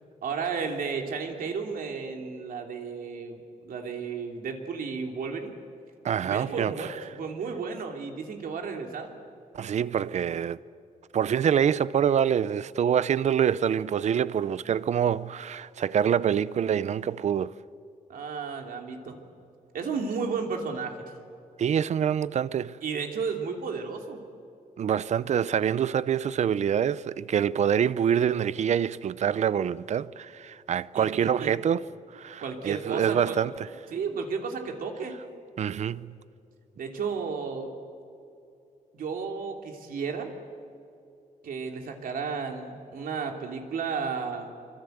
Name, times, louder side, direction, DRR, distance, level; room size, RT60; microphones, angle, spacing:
voice 1, 0.2-5.6 6.2-9.2 18.1-19.2 19.7-20.9 22.8-24.2 30.9-31.5 32.4-33.4 33.9-35.2 36.8-37.7 38.9-40.3 41.4-44.5, right 5 dB, 85° right, 3.0 m, -33 dB
voice 2, 6.0-7.0 9.5-10.6 11.1-17.5 21.6-22.8 24.8-31.9 32.1-33.5 35.6-36.1, right 8 dB, 55° right, 0.6 m, -26 dB
25.5 x 25.0 x 8.0 m
wide cardioid pair, 170°, 14 cm